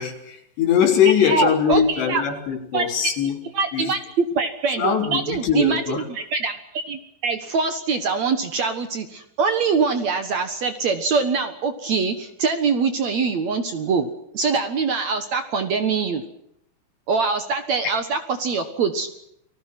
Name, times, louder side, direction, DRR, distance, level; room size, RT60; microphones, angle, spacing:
voice 1, 0.0-3.4 3.7-3.9 4.8-6.1 17.8-17.9, left 8 dB, 90° left, 3 dB, 5.5 m, -21 dB
voice 2, 1.2-2.2 2.7-3.1 3.5-14.1 14.3-16.2 17.1-19.1, right 5 dB, 60° right, 8 dB, 2.1 m, -23 dB
29.5 x 20.0 x 6.1 m, 0.76 s
omnidirectional pair, 4.8 m